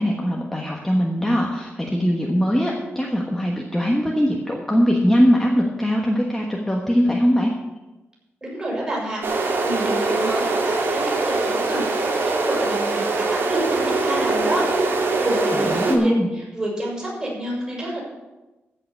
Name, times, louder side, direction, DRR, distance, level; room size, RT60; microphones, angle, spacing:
voice 1, 0.0-7.5 15.5-16.3, equal, 5° left, -2 dB, 1.3 m, -21 dB
voice 2, 8.4-14.6 15.2-18.0, right 1 dB, 20° right, -4 dB, 5.7 m, -28 dB
sound 1, 9.2-15.9, right 3 dB, 60° right, 2.2 m, -22 dB
15.0 x 5.8 x 8.2 m, 1.1 s
wide cardioid pair, 170°, 4 cm